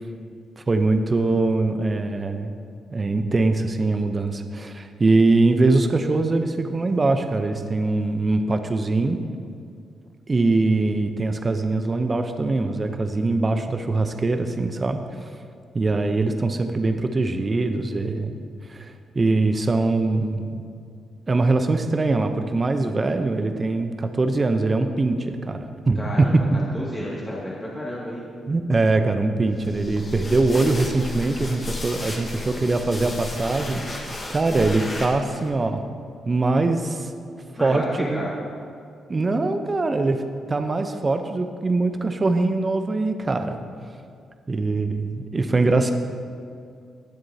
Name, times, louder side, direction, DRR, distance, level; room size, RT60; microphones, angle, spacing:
voice 1, 0.6-2.5 2.9-9.2 10.3-15.3 15.7-18.3 18.7-20.7 21.3-26.4 28.5-35.9 36.3-37.1 37.6-38.2 39.1-40.2 40.5-43.6 44.5-45.9, right 3 dB, 35° right, 7 dB, 0.7 m, -22 dB
voice 2, 26.0-26.3 26.7-28.2 37.5-38.3, left 1 dB, 20° left, -6 dB, 2.2 m, -30 dB
sound 1, 29.6-35.5, left 2 dB, 45° left, 1.9 m, -34 dB
20.0 x 7.6 x 2.8 m, 2.3 s
hypercardioid pair, 45°, 0 cm